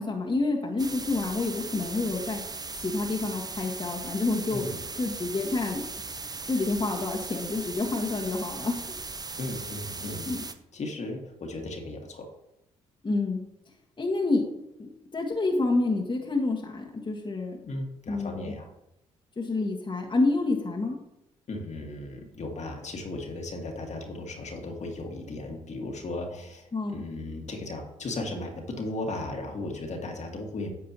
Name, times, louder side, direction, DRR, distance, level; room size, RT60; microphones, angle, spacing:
voice 1, 0.0-2.4 2.8-4.7 5.0-5.8 6.5-8.8 10.3-10.4 13.0-13.4 14.0-14.4 14.8-17.6 18.1-18.5 19.4-21.0 26.7-27.0, left 3 dB, 30° left, -2 dB, 1.7 m, -28 dB
sound 1, 0.8-10.5, right 3 dB, 25° right, 0.8 m, -38 dB
voice 2, 9.4-10.3 10.7-12.3 17.6-18.7 21.5-30.7, left 2 dB, 50° left, 2 dB, 1.9 m, -36 dB
9.7 x 7.4 x 3.0 m, 0.86 s
hypercardioid pair, 40°, 16 cm